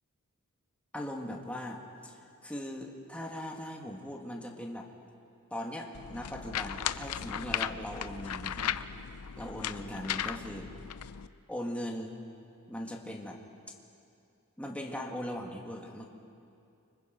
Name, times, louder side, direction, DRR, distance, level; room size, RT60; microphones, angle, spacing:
voice 1, 0.9-4.9 5.5-8.8 9.4-10.7 11.5-12.2 12.7-13.4 14.6-16.1, left 1 dB, 5° left, 0 dB, 2.1 m, -39 dB
sound 1, 5.9-11.3, left 9 dB, 90° left, 0.6 m, -36 dB
29.0 x 25.0 x 5.3 m, 2.5 s
head